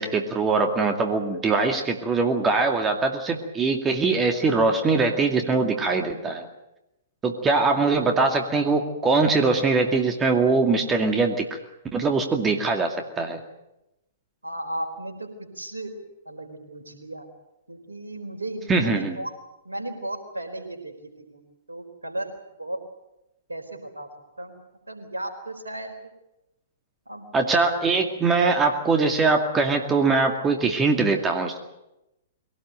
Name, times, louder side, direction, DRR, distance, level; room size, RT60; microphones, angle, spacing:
voice 1, 0.0-6.5 7.2-11.6 11.9-13.4 18.7-19.2 27.3-31.6, right 3 dB, 15° right, 4 dB, 2.3 m, -22 dB
voice 2, 14.4-16.0 16.2-17.3 17.7-19.3 19.6-21.4 21.7-22.3 22.6-22.8 23.5-24.1 24.4-24.6 24.9-25.9 27.1-27.3, right 1 dB, 80° right, 5 dB, 4.3 m, -35 dB
22.5 x 18.0 x 9.1 m, 0.91 s
figure-of-eight pair, 110°, 0 cm